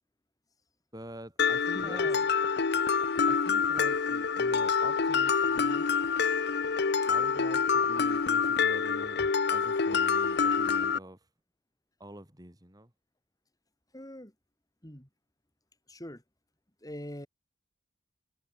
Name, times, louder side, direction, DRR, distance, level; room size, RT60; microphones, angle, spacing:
voice 1, 0.9-2.2 3.3-5.9 7.1-9.2 9.5-11.2 12.0-12.9, right 1 dB, 20° right, 6.0 m, -46 dB
Mallet percussion, 1.4-11.0, left 5 dB, 55° left, 0.7 m, -27 dB
voice 2, 1.7-2.1 9.2-9.3 13.9-14.3 14.8-15.1 15.9-16.2 16.8-17.3, equal, 20° left, 5.0 m, -42 dB
head